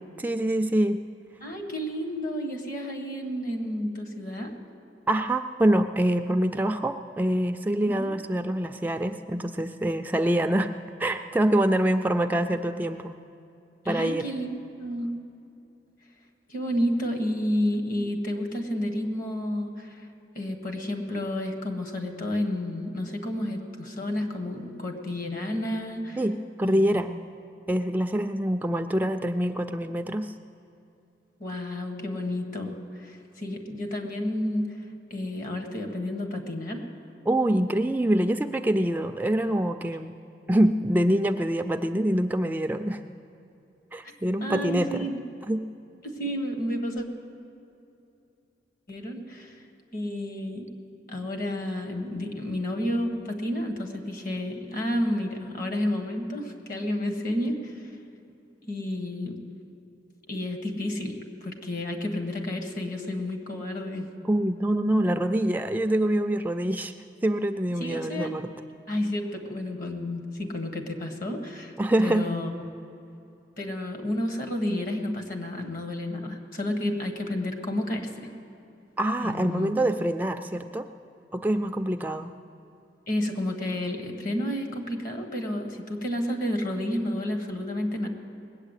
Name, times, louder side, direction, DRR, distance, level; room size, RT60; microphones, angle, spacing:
voice 1, 0.2-1.0 5.1-10.7 11.0-13.2 13.9-14.3 26.2-27.1 27.7-30.3 37.3-40.2 40.5-43.0 43.9-45.1 45.5-45.6 64.2-66.9 67.2-68.4 71.8-72.3 79.0-80.9 81.3-82.3, right 1 dB, 10° right, 7 dB, 0.3 m, -25 dB
voice 2, 1.4-4.5 7.9-8.1 13.8-15.1 16.5-20.1 20.3-26.2 26.6-27.0 31.4-36.9 44.0-44.1 44.4-45.2 46.0-47.1 48.9-49.7 49.9-50.7 51.1-57.9 58.7-59.4 60.3-64.1 67.8-68.3 68.9-71.7 72.0-72.5 73.6-78.3 79.2-79.7 83.1-88.1, left 1 dB, 55° left, 4 dB, 1.6 m, -31 dB
19.5 x 8.2 x 8.2 m, 2.8 s
head